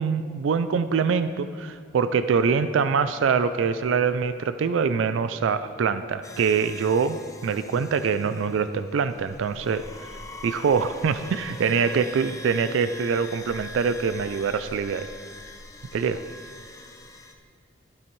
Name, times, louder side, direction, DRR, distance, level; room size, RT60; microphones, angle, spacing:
voice 1, 0.0-7.2 7.4-10.1 10.4-15.1 15.9-16.2, right 6 dB, 80° right, 12 dB, 0.3 m, -24 dB
sound 1, 6.2-17.3, left 1 dB, 15° left, 0.5 m, -43 dB
12.0 x 8.5 x 3.2 m, 2.4 s
head